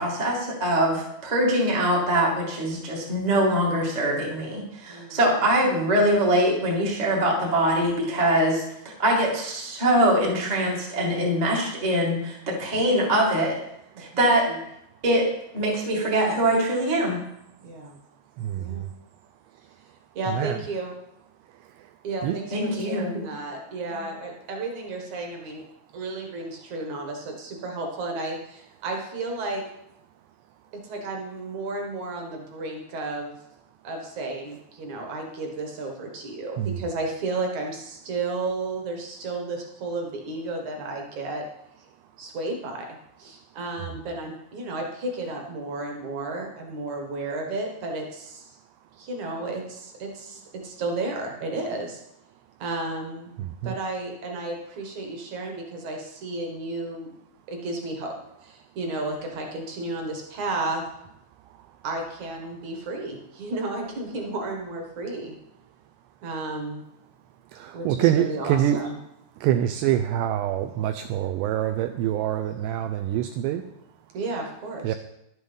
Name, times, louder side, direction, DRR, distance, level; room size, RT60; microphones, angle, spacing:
voice 1, 0.0-13.6 14.0-14.6 15.0-15.3 15.5-17.2 22.5-23.2, right 1 dB, 35° right, -3 dB, 0.6 m, -23 dB
voice 2, 4.9-5.2 14.1-14.3 17.6-18.0 18.6-18.9 20.2-20.9 22.0-25.6 25.9-29.6 30.8-33.4 33.8-41.4 42.2-42.9 43.2-48.6 49.0-52.0 52.6-53.3 53.6-57.1 57.5-58.1 58.4-60.8 61.8-65.3 66.2-66.8 67.7-69.0 74.1-74.9, right 2 dB, 55° right, 2 dB, 2.2 m, -33 dB
voice 3, 18.4-18.9 20.3-20.6 21.6-21.9 22.2-22.4 36.6-36.8 53.4-53.8 61.5-61.7 67.5-68.8 69.4-73.6 74.8-75.0, right 11 dB, 85° right, 7 dB, 2.5 m, -26 dB
11.0 x 8.1 x 5.3 m, 0.81 s
omnidirectional pair, 5.2 m